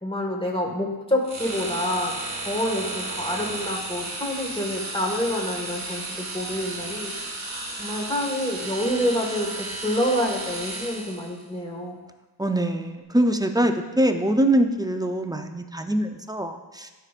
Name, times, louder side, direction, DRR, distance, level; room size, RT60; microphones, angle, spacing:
voice 1, 0.0-7.1 7.8-12.0, left 1 dB, 10° left, 0 dB, 1.7 m, -27 dB
sound 1, 1.2-11.4, right 2 dB, 40° right, 1.3 m, -33 dB
voice 2, 12.4-16.9, right 1 dB, 10° right, 6 dB, 0.5 m, -23 dB
12.0 x 5.1 x 2.5 m, 1.2 s
cardioid pair, 45°, 43 cm